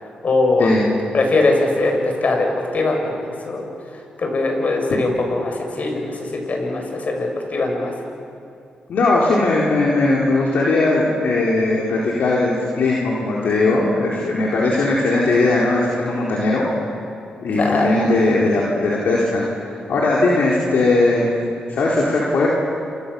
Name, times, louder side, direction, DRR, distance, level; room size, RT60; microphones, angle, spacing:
voice 1, 0.2-0.7 1.1-2.5 2.7-3.6 4.2-7.9 17.6-18.0, left 2 dB, 55° left, 2 dB, 7.2 m, -21 dB
voice 2, 8.9-16.7 17.4-21.3 21.7-22.5, left 2 dB, 70° left, -4 dB, 4.2 m, -19 dB
29.0 x 28.0 x 7.1 m, 2.5 s
supercardioid pair, 55°, 3 cm